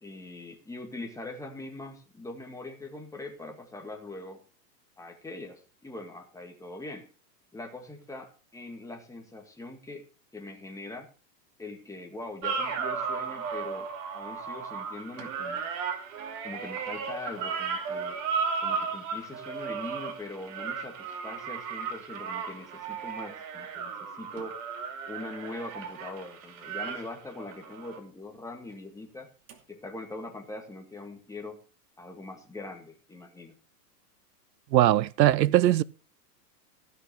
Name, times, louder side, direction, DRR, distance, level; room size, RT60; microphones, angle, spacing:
voice 1, 0.0-4.4 5.0-7.1 7.5-10.0 10.3-11.1 11.6-13.9 14.1-15.7 16.4-18.2 18.6-24.6 25.1-29.3 29.7-31.6 32.0-33.6, left 2 dB, 5° left, 2.0 m, -42 dB
sound 1, 12.4-28.0 29.5-29.6, right 5 dB, 50° right, 2.8 m, -35 dB
voice 2, 34.7-35.8, right 14 dB, 85° right, 0.7 m, -20 dB
15.0 x 6.4 x 6.8 m
hypercardioid pair, 135°, 49 cm